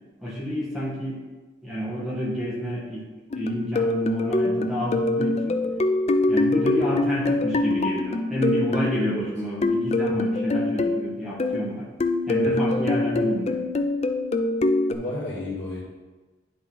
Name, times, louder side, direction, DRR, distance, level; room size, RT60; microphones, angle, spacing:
voice 1, 0.2-1.2 1.6-3.0 3.3-5.6 6.3-11.9 12.3-13.7, equal, ahead, -7 dB, 1.4 m, -29 dB
sound 1, 3.3-8.9 9.6-11.7 12.0-14.9, left 2 dB, 35° left, 0.4 m, -24 dB
voice 2, 14.9-15.8, left 2 dB, 65° left, -6 dB, 2.2 m, -32 dB
9.9 x 3.8 x 3.9 m, 1.3 s
head